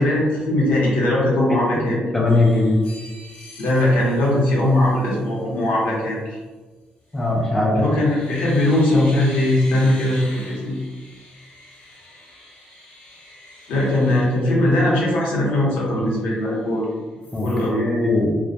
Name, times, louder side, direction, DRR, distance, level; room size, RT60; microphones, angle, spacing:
voice 1, 0.0-2.0 3.6-6.4 7.7-10.8 13.7-16.9 17.4-17.9, left 1 dB, 85° left, -4 dB, 0.8 m, -20 dB
voice 2, 1.5-2.7 7.1-7.8 17.3-18.4, left 2 dB, 10° left, -2 dB, 0.4 m, -20 dB
sound 1, 2.3-5.3 7.1-7.5 7.8-15.1 15.5-15.6 15.9-16.8 17.2-17.7, left 1 dB, 55° left, 0.8 m, -44 dB
2.2 x 2.1 x 2.7 m, 1.3 s
cardioid pair, 150°, 3 cm